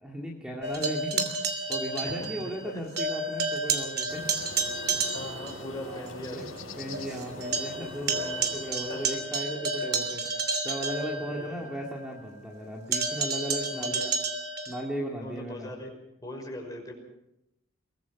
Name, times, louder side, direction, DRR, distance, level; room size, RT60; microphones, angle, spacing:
voice 1, 0.0-1.3 1.7-4.3 5.8-6.5 6.8-14.1 14.7-15.7, equal, 5° right, -2 dB, 2.4 m, -36 dB
sound 1, 0.6-2.7 3.0-5.6 6.1-6.2 6.6-6.7 6.9-11.7 12.9-14.8, right 3 dB, 45° right, 2.9 m, -30 dB
voice 2, 2.0-2.8 5.1-6.5 8.1-8.5 8.9-9.2 11.0-11.6 13.7-14.1 15.2-15.9 16.2-16.9, left 1 dB, 15° left, 1 dB, 5.6 m, -40 dB
sound 2, 4.1-9.2, left 2 dB, 75° left, 6.7 m, -43 dB
23.5 x 20.0 x 6.0 m, 0.84 s
head